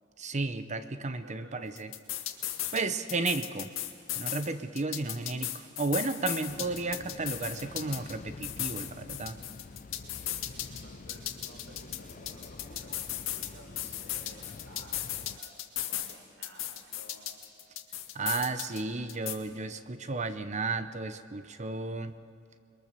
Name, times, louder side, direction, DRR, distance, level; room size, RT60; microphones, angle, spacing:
voice 1, 0.2-1.9 2.7-3.7 4.2-9.4 18.1-22.1, right 3 dB, 35° right, 11 dB, 0.8 m, -33 dB
voice 2, 1.2-1.7 2.4-2.5 10.5-17.4, right 1 dB, 80° right, 4 dB, 4.0 m, -55 dB
sound 1, 1.8-2.8 3.1-4.5 4.8-8.1 8.4-10.8 11.1-13.5 13.8-16.1 16.4-18.8 19.1-19.3, left 12 dB, 90° left, 1.9 m, -36 dB
sound 2, 6.5-15.4, left 3 dB, 40° left, 0.5 m, -47 dB
28.5 x 22.0 x 6.9 m, 2.4 s
head